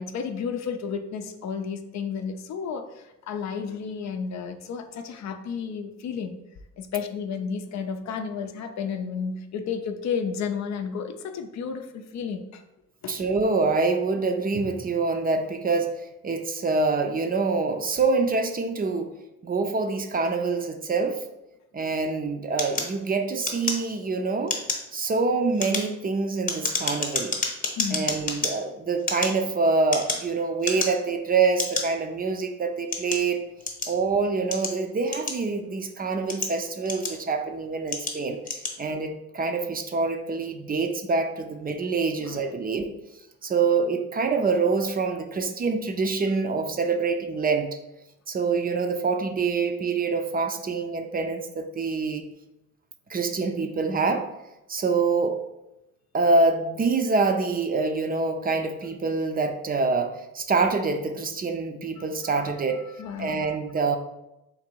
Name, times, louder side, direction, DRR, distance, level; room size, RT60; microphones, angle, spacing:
voice 1, 0.0-6.4 6.8-12.6 13.0-13.2 27.8-28.1 42.2-42.5 62.2-63.6, left 6 dB, 65° left, 7 dB, 0.5 m, -32 dB
voice 2, 13.1-19.1 19.4-21.2 21.7-24.6 24.9-27.4 27.9-33.4 33.9-38.4 38.8-42.9 43.4-47.8 48.3-52.2 53.1-54.3 54.7-55.4 56.1-62.9 63.2-64.0, right 4 dB, 30° right, 6 dB, 0.5 m, -25 dB
Pen Clicking, 22.6-24.1 24.4-24.9 25.4-28.5 29.0-30.3 30.6-31.1 31.6-31.8 32.5-34.0 34.5-35.7 36.1-37.4 37.9-38.2 38.4-38.8, left 3 dB, 30° left, 0.9 m, -29 dB
3.8 x 2.6 x 4.5 m, 0.92 s
cardioid pair, 90°, 30 cm